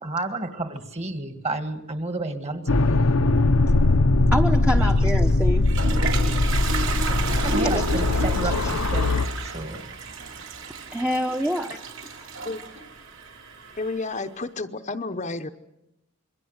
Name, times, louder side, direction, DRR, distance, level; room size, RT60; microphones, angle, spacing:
voice 1, 0.0-2.9 4.7-4.9 7.2-9.8, right 2 dB, 30° right, 8 dB, 2.0 m, -31 dB
sound 1, 2.7-9.3, left 2 dB, 80° left, 1.0 m, -21 dB
voice 2, 4.3-5.7 7.3-8.7 10.9-11.8 12.4-12.5, equal, 5° right, 4 dB, 1.0 m, -28 dB
Toilet flush, 5.3-14.2, right 3 dB, 60° right, 3.3 m, -32 dB
voice 3, 13.8-15.5, left 3 dB, 35° left, 7 dB, 0.9 m, -31 dB
27.0 x 22.5 x 8.0 m, 0.88 s
head